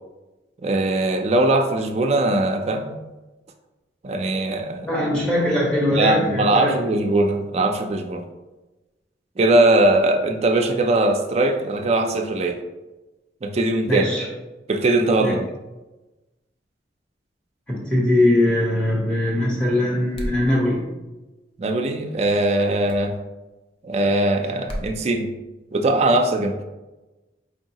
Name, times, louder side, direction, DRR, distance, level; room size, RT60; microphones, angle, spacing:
voice 1, 0.6-3.0 4.0-4.9 5.9-8.3 9.4-12.6 13.4-14.1 14.7-15.5 21.6-23.2 23.8-25.3 25.7-26.6, right 2 dB, 35° right, 5 dB, 0.4 m, -20 dB
voice 2, 4.8-6.7 13.9-14.3 15.2-15.4 17.7-20.8, left 1 dB, 5° left, -5 dB, 0.9 m, -21 dB
sound 1, 20.1-20.5 22.9-23.1 24.7-24.9, equal, 30° left, 0.5 m, -30 dB
4.5 x 2.7 x 2.8 m, 1.1 s
head